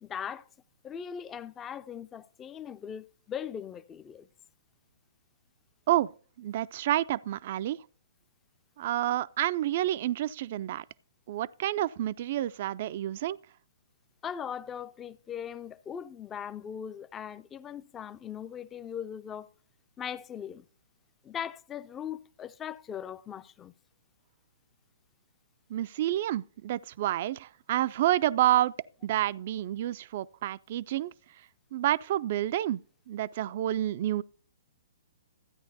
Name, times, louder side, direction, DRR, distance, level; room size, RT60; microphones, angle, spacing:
voice 1, 0.0-0.5 0.8-4.3 14.2-19.5 20.0-20.7 21.2-23.7, left 8 dB, 20° left, 0.4 m, -39 dB
voice 2, 6.4-7.8 8.8-10.8 11.3-13.4 25.7-28.7 29.0-31.1 31.7-34.2, right 13 dB, 50° right, 0.3 m, -29 dB
13.0 x 9.4 x 2.7 m
figure-of-eight pair, 125°, 0 cm